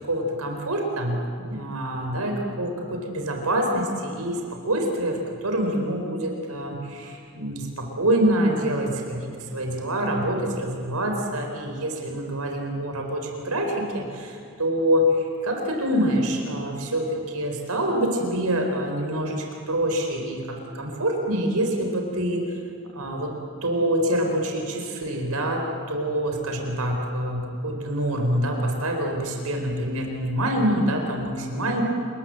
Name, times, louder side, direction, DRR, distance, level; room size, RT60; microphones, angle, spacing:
voice 1, 0.0-22.4 22.9-23.3 23.6-31.8, right 1 dB, 85° right, 2 dB, 4.3 m, -26 dB
29.5 x 20.5 x 7.7 m, 2.4 s
head